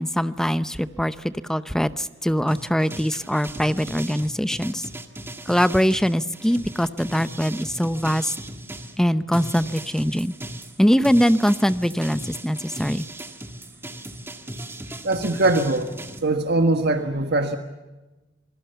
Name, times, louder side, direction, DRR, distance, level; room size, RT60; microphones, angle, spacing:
voice 1, 0.0-4.9 5.5-8.3 9.0-10.3 10.8-13.0, equal, 5° left, 13 dB, 0.7 m, -22 dB
sound 1, 2.5-9.0 9.3-16.2, right 1 dB, 15° right, 1.8 m, -38 dB
voice 2, 15.0-15.9 16.2-17.6, right 2 dB, 60° right, 6 dB, 1.6 m, -21 dB
27.0 x 20.5 x 7.0 m, 1.1 s
head